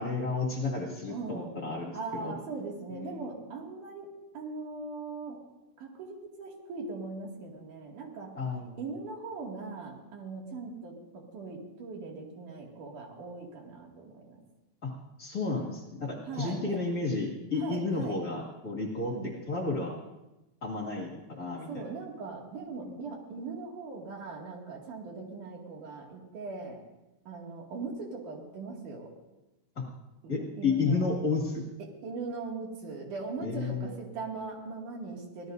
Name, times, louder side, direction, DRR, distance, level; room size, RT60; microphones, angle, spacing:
voice 1, 0.0-2.3 2.9-3.2 8.4-8.8 14.8-14.9 15.2-19.2 19.5-20.0 20.6-21.8 22.8-23.0 29.8-29.9 30.3-31.6 33.4-34.0, left 3 dB, 30° left, -2 dB, 2.2 m, -32 dB
voice 2, 1.1-1.5 1.9-4.1 4.3-5.5 5.8-8.4 8.8-14.4 16.3-16.8 17.6-18.2 19.0-19.3 21.7-26.8 27.3-29.1 30.2-31.1 31.8-35.5, right 4 dB, 85° right, -1 dB, 3.8 m, -40 dB
24.5 x 17.0 x 2.6 m, 1.0 s
omnidirectional pair, 3.5 m